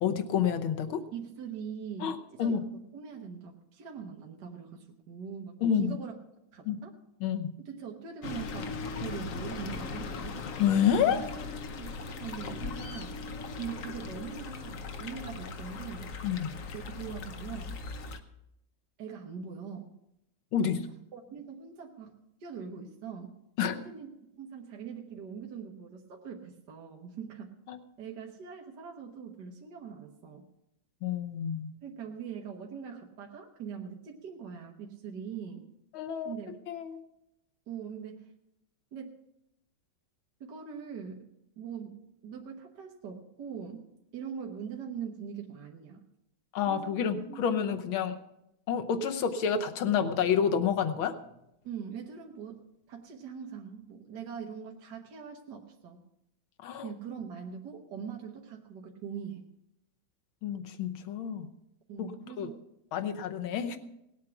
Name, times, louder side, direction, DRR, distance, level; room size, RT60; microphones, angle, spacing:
voice 1, 0.0-1.0 2.0-2.6 5.6-5.9 6.7-6.8 7.2-7.5 10.6-11.2 16.2-16.6 20.5-20.8 23.6-23.8 27.7-27.8 31.0-31.7 35.9-36.3 36.7-37.0 46.5-48.2 48.7-51.2 56.6-56.9 60.4-61.5 62.0-62.1 62.4-62.5 62.9-63.8, left 8 dB, 90° left, 7 dB, 1.8 m, -29 dB
voice 2, 1.1-2.7 2.9-6.1 6.5-6.9 7.6-10.4 11.8-13.3 13.6-16.1 16.7-17.8 19.0-19.9 20.6-20.8 21.1-23.3 23.7-24.1 24.4-27.5 28.0-30.5 31.8-35.7 36.2-36.5 37.7-38.3 38.9-39.2 40.4-41.3 41.6-46.0 46.7-47.5 51.6-52.6 52.9-56.0 56.8-59.4 61.9-62.6 62.9-63.1, right 7 dB, 60° right, 1 dB, 1.8 m, -42 dB
sound 1, 8.2-18.2, left 4 dB, 55° left, 1.0 m, -39 dB
18.5 x 8.4 x 5.9 m, 0.83 s
omnidirectional pair, 2.2 m